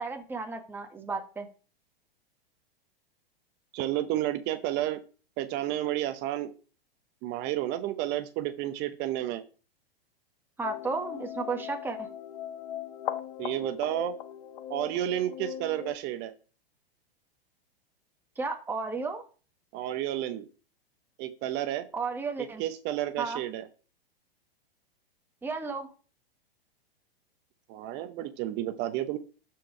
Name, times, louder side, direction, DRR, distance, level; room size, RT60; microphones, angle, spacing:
voice 1, 0.0-1.5 10.6-12.1 18.4-19.2 21.9-22.6 23.2-23.4 25.4-25.9, right 4 dB, 5° right, 3 dB, 1.3 m, -33 dB
voice 2, 3.7-5.0 5.4-6.5 7.2-9.4 13.4-14.2 14.7-16.3 19.7-20.5 21.2-21.9 22.4-23.6 27.7-29.2, right 13 dB, 35° right, 10 dB, 0.9 m, -31 dB
sound 1, 10.6-16.0, left 11 dB, 55° left, 0.9 m, -38 dB
12.5 x 4.7 x 4.8 m, 0.38 s
hypercardioid pair, 110°, 30 cm